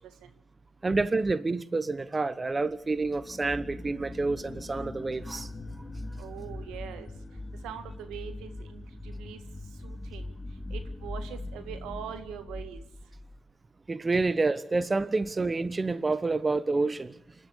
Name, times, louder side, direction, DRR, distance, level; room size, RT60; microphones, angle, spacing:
voice 1, 0.8-5.5 13.9-17.1, right 3 dB, 35° right, 1.0 m, -28 dB
sound 1, 2.7-13.4, left 2 dB, 30° left, 3.4 m, -41 dB
voice 2, 6.2-7.1 7.6-9.4 9.8-10.3 10.7-12.8, right 9 dB, 90° right, 1.8 m, -42 dB
27.5 x 12.0 x 8.6 m
supercardioid pair, 45°, 0 cm